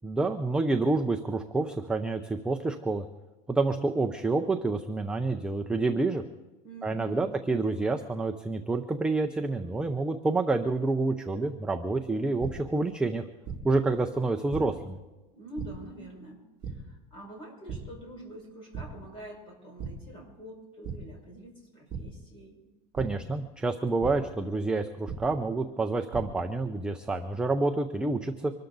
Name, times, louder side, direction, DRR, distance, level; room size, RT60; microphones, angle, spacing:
voice 1, 0.0-3.0 3.5-6.2 6.8-13.2 13.6-15.0 22.9-28.5, right 3 dB, 5° right, 5 dB, 0.4 m, -28 dB
voice 2, 6.6-7.3 15.3-22.6, right 1 dB, 25° left, 1 dB, 5.4 m, -46 dB
sound 1, 12.4-12.5 13.4-13.6 14.5-14.6 15.6-15.7 16.6-16.7 17.7-17.8 18.2-18.4 18.7-18.8 19.8-19.9 20.8-21.0 21.9-22.0 22.9-23.0 24.0-24.1 25.1-25.2 25.9-26.2, right 8 dB, 20° right, 2.3 m, -35 dB
25.0 x 13.0 x 4.0 m, 1.1 s
supercardioid pair, 165°, 21 cm